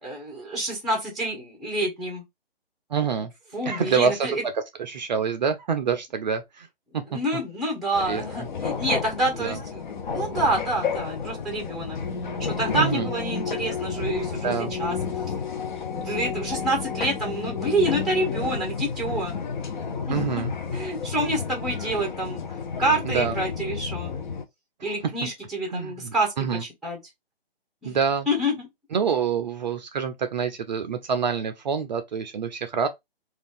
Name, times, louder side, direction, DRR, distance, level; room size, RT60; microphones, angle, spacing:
voice 1, 0.0-2.2 3.5-4.4 7.1-12.0 12.4-15.0 15.9-19.4 20.1-20.2 20.7-22.4 22.8-24.1 24.8-26.3 26.6-27.0 27.8-28.0 28.3-28.7, right 1 dB, ahead, 0.6 m, -27 dB
voice 2, 2.9-3.3 3.7-4.3 4.8-6.7 8.1-8.2 9.4-9.6 12.7-13.1 14.4-14.7 20.1-20.5 23.0-23.4 24.8-24.9 25.7-26.6 27.8-28.3 28.9-32.9, right 6 dB, 45° right, 0.4 m, -26 dB
sound 1, 7.9-24.4, left 6 dB, 50° left, 0.6 m, -31 dB
2.5 x 2.3 x 3.5 m
figure-of-eight pair, 140°, 30 cm